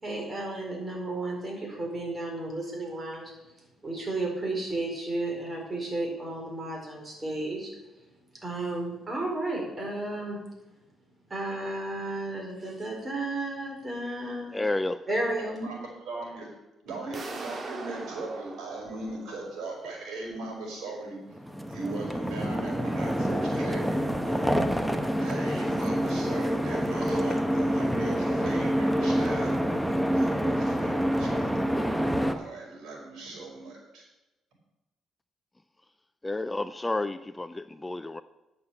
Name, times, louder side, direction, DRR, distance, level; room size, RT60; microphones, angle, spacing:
voice 1, 0.0-3.3 3.8-7.7 8.4-10.4 11.3-14.6 15.1-15.5, right 2 dB, 25° right, 4.6 m, -33 dB
voice 2, 14.5-15.0 36.2-38.2, left 2 dB, 15° left, 0.5 m, -30 dB
voice 3, 15.4-16.5 16.8-21.2 21.6-24.5 25.2-29.6 30.1-31.5 32.3-34.0, right 2 dB, 80° right, 4.8 m, -39 dB
sound 1, 17.1-20.0, right 3 dB, 40° right, 1.8 m, -41 dB
sound 2, 21.4-32.3, equal, 5° right, 1.0 m, -27 dB
11.0 x 6.6 x 7.2 m
cardioid pair, 90°, 0 cm